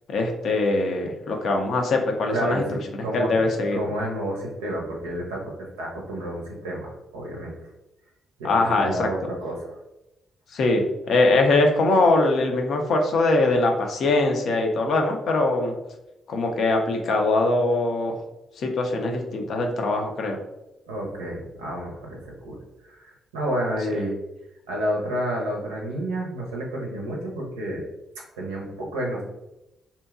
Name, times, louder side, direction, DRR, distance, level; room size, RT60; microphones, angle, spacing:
voice 1, 0.1-2.6 3.1-3.8 8.4-9.1 10.5-15.7 16.3-18.2 18.6-20.4 23.9-24.0, left 2 dB, 60° left, 3 dB, 0.4 m, -22 dB
voice 2, 2.3-7.7 8.4-9.8 20.9-24.2 24.7-27.8 28.3-29.2, right 1 dB, 80° right, -2 dB, 0.5 m, -30 dB
2.7 x 2.2 x 2.4 m, 0.94 s
hypercardioid pair, 40°, 0 cm